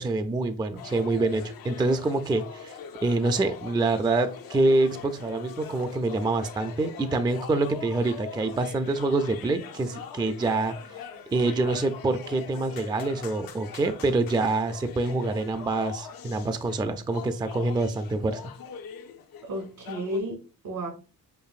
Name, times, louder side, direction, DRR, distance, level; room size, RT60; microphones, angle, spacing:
voice 1, 0.0-2.8 3.0-10.8 11.3-18.4, right 2 dB, 15° right, 10 dB, 0.4 m, -26 dB
sound 1, 0.8-20.2, left 7 dB, 75° left, 0.7 m, -42 dB
voice 2, 19.4-20.9, equal, 80° right, 2 dB, 2.1 m, -32 dB
6.6 x 2.6 x 2.4 m, 0.34 s
cardioid pair, 80°, 35 cm